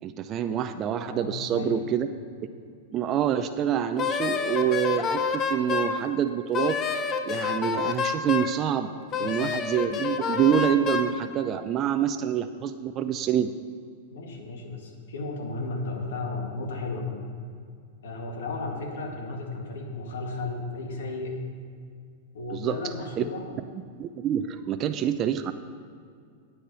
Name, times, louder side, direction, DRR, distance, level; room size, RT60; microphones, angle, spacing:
voice 1, 0.0-2.1 2.9-6.8 7.2-8.9 9.2-13.5 22.5-22.8 23.2-23.3 24.0-25.5, right 9 dB, 35° right, 8 dB, 0.5 m, -26 dB
voice 2, 1.1-1.8 9.2-9.4 14.1-17.3 18.0-21.4 22.3-23.5, left 3 dB, 75° left, 2 dB, 1.9 m, -34 dB
Wind instrument woodwind instrument, 4.0-6.0 6.5-8.6 9.1-11.1, left 6 dB, 30° left, 0.8 m, -28 dB
10.0 x 7.9 x 5.6 m, 2.3 s
hypercardioid pair, 120°, 0 cm